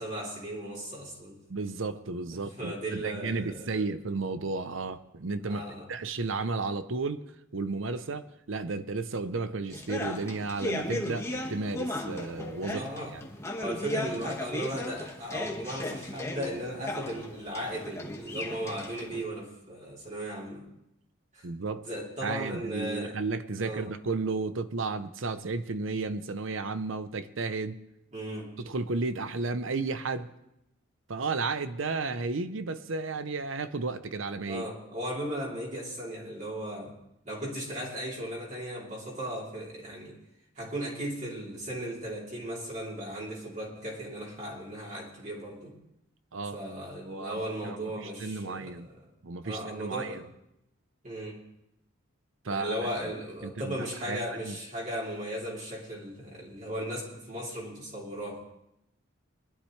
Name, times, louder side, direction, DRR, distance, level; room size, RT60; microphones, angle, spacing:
voice 1, 0.0-1.4 2.6-3.8 5.5-5.9 12.7-13.1 13.6-20.7 21.3-21.5 21.8-23.2 23.6-23.9 28.1-28.5 34.5-37.0 37.3-40.2 40.6-45.8 46.5-49.0 49.4-50.2 51.0-51.4 52.5-58.4, equal, 35° right, 3.4 m, -36 dB
voice 2, 1.5-5.6 5.9-7.2 7.5-12.9 13.1-13.2 21.4-21.9 22.2-27.8 28.6-30.3 31.1-34.6 46.3-46.6 47.1-48.9 49.2-50.2 52.4-52.8 53.4-54.5, right 3 dB, 65° right, 0.7 m, -33 dB
sound 1, 9.7-19.3, left 1 dB, 15° left, 1.5 m, -36 dB
22.0 x 11.5 x 3.2 m
head